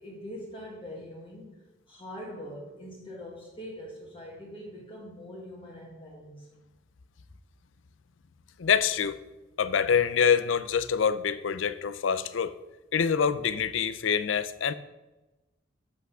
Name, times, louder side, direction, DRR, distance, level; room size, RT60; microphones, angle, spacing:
voice 1, 0.0-6.5, equal, 25° left, 1.5 m, -43 dB
voice 2, 8.6-9.2 9.6-12.6 12.9-14.7, left 7 dB, 75° left, 0.5 m, -25 dB
7.8 x 6.0 x 5.6 m
head